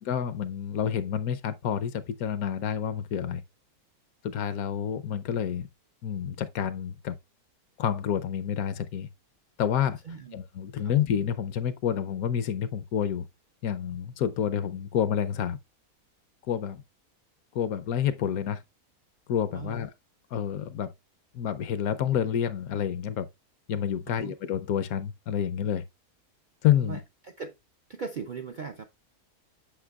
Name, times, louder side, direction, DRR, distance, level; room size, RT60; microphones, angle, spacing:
voice 1, 0.0-3.4 4.2-5.7 6.0-7.2 7.8-9.1 9.6-10.0 10.3-13.3 13.6-15.6 16.5-16.8 17.5-18.6 19.3-19.9 20.3-20.9 21.3-23.3 23.7-25.8 26.6-27.0, left 9 dB, 75° left, 1.1 m, -28 dB
voice 2, 10.1-10.4 10.8-10.9 19.5-19.8 24.1-24.3 26.8-27.0 27.4-27.5 27.9-28.8, right 5 dB, 80° right, 0.4 m, -38 dB
8.0 x 6.4 x 2.3 m
omnidirectional pair, 1.6 m